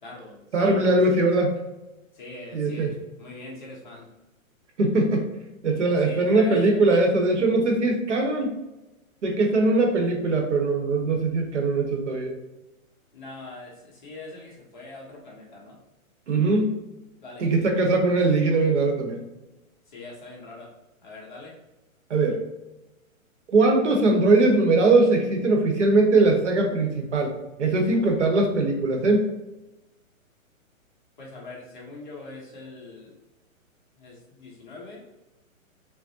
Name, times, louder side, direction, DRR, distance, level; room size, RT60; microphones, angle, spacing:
voice 1, 0.0-1.4 2.1-2.9 3.2-4.1 6.0-7.0 13.1-15.8 17.2-17.5 19.9-20.7 21.0-21.5 31.2-33.1 34.0-35.0, left 3 dB, 35° left, -3 dB, 0.9 m, -42 dB
voice 2, 0.5-1.5 2.5-2.9 4.8-5.3 5.6-8.6 9.2-12.3 16.3-16.8 17.4-19.2 22.1-22.4 23.5-27.3 27.6-29.3, right 2 dB, 55° right, 3 dB, 0.8 m, -21 dB
5.9 x 2.1 x 2.7 m, 0.99 s
hypercardioid pair, 175°, 42 cm